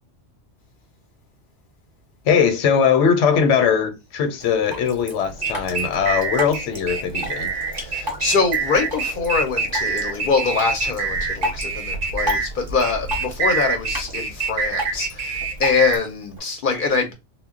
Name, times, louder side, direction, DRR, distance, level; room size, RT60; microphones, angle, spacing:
voice 1, 2.2-7.5, left 7 dB, 80° left, 0.9 m, -20 dB
Drip, 4.4-16.4, equal, 20° right, 0.7 m, -34 dB
sound 1, 5.2-16.0, right 4 dB, 60° right, 0.6 m, -26 dB
voice 2, 7.8-17.1, left 4 dB, 55° left, 0.6 m, -23 dB
2.1 x 2.0 x 3.5 m
omnidirectional pair, 1.3 m